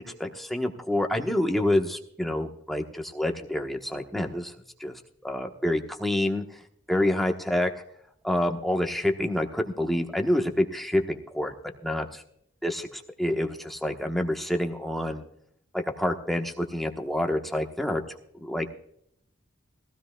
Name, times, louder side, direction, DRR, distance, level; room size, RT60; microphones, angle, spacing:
voice 1, 0.2-4.5 4.8-4.9 5.2-6.6 6.9-7.7 8.2-11.5 11.8-12.2 12.6-15.2 15.7-18.0 18.3-18.6, left 1 dB, ahead, 2 dB, 1.1 m, -27 dB
18.0 x 15.5 x 2.3 m, 0.68 s
head